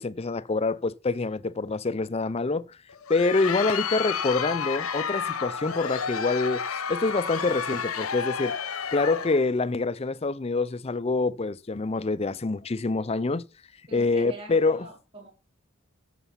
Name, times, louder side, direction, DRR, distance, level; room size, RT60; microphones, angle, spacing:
voice 1, 0.0-2.7 3.1-6.6 6.9-8.5 8.9-13.4 13.9-14.9, left 3 dB, 30° left, 0.5 m, -26 dB
Crowd, 2.9-9.5, left 6 dB, 90° left, 1.0 m, -31 dB
voice 2, 13.9-15.3, right 1 dB, 25° right, 4.2 m, -43 dB
11.5 x 6.8 x 5.7 m
head